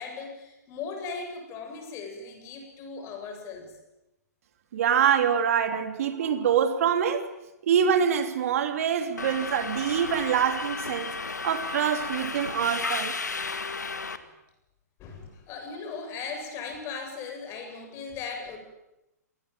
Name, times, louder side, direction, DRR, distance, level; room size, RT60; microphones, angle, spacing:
voice 1, 0.0-3.8 15.0-18.6, left 5 dB, 30° left, 7.9 m, -38 dB
voice 2, 4.7-7.3 7.6-11.1 11.4-13.1, right 8 dB, 55° right, 3.2 m, -25 dB
Subway metro underground, 9.2-14.2, left 4 dB, 85° left, 2.1 m, -33 dB
27.0 x 20.0 x 9.4 m
figure-of-eight pair, 120°, 9 cm